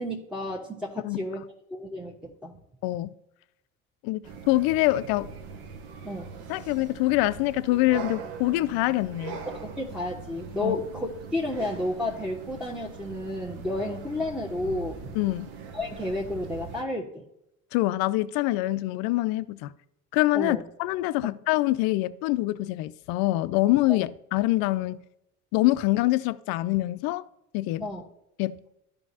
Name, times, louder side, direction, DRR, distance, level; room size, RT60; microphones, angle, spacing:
voice 1, 0.0-1.4 1.7-2.6 6.0-6.3 9.5-15.1 15.7-17.2 20.3-20.6 23.9-24.0 27.8-28.0, left 1 dB, ahead, 1.1 m, -32 dB
voice 2, 2.8-3.1 4.0-5.3 6.5-9.4 10.6-10.8 15.2-15.5 17.7-19.7 20.1-25.0 25.5-27.2 27.5-27.9 28.4-28.6, left 18 dB, 60° left, 0.5 m, -25 dB
sound 1, 4.2-16.8, right 5 dB, 60° right, 1.0 m, -41 dB
13.5 x 5.2 x 2.8 m
hypercardioid pair, 60°, 41 cm